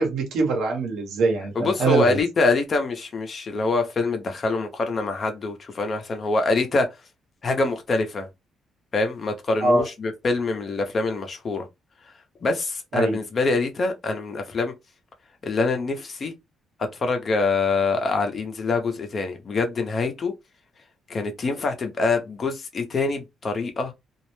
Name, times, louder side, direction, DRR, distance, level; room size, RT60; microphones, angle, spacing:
voice 1, 0.0-2.2 9.6-9.8 12.9-13.2, right 3 dB, 80° right, 1.0 m, -23 dB
voice 2, 1.5-6.9 7.4-8.3 8.9-11.6 12.4-14.7 15.4-16.3 17.0-20.3 21.1-23.9, left 3 dB, 45° left, 0.7 m, -25 dB
2.5 x 2.0 x 3.1 m
cardioid pair, 90°, 0 cm